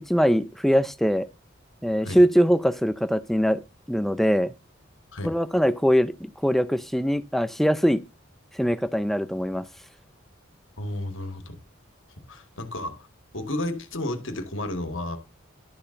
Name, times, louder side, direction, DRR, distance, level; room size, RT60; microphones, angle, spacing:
voice 1, 0.1-1.3 1.8-3.6 3.9-4.5 5.2-8.0 8.6-9.7, equal, ahead, 0.6 m, -22 dB
voice 2, 10.8-11.6 12.2-13.1 13.3-15.2, left 1 dB, 70° left, 1.9 m, -32 dB
12.0 x 4.2 x 6.4 m
head